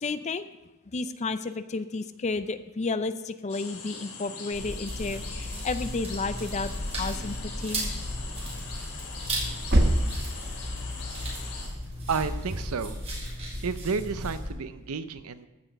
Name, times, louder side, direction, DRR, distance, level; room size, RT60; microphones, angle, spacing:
voice 1, 0.0-0.5 0.9-7.9, left 3 dB, 30° left, 12 dB, 0.5 m, -32 dB
sound 1, 3.5-11.7, left 4 dB, 75° left, 2.7 m, -41 dB
sound 2, 4.5-14.5, equal, 30° right, 3.6 m, -35 dB
sound 3, 9.1-11.1 12.0-13.2, right 1 dB, 50° right, 1.1 m, -27 dB
voice 2, 12.1-13.0 13.6-15.5, right 5 dB, 85° right, 12 dB, 0.6 m, -31 dB
14.5 x 6.1 x 5.2 m, 1.0 s
head